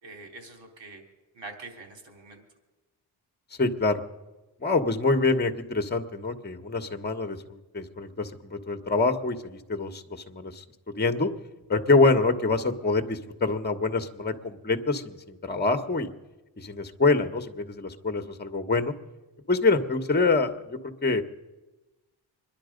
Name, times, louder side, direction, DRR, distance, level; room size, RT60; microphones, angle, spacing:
voice 1, 0.0-1.0 1.3-2.4, right 3 dB, 70° right, 3 dB, 4.0 m, -44 dB
voice 2, 3.6-4.0 4.6-10.6 11.0-11.3 11.7-16.1 16.6-18.9 19.5-21.2, left 3 dB, 20° left, 8 dB, 1.3 m, -25 dB
25.5 x 11.0 x 5.2 m, 1.1 s
supercardioid pair, 60°, 45 cm